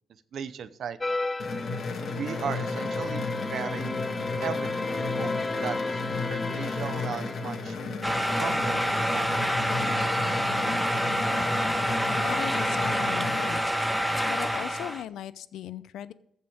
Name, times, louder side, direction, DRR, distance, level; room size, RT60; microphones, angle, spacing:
voice 1, 0.3-1.2 2.2-4.0 4.4-7.8 8.4-10.5, right 7 dB, 60° right, 14 dB, 0.7 m, -37 dB
sound 1, 1.0-7.9, left 3 dB, 20° left, 0.3 m, -33 dB
sound 2, 1.4-13.5, left 3 dB, 55° left, 1.7 m, -34 dB
sound 3, 8.0-15.0, equal, ahead, 0.7 m, -27 dB
voice 2, 12.2-13.6 14.3-16.1, left 11 dB, 80° left, 15 dB, 0.6 m, -37 dB
15.0 x 5.7 x 5.1 m, 0.79 s
cardioid pair, 90°, 0 cm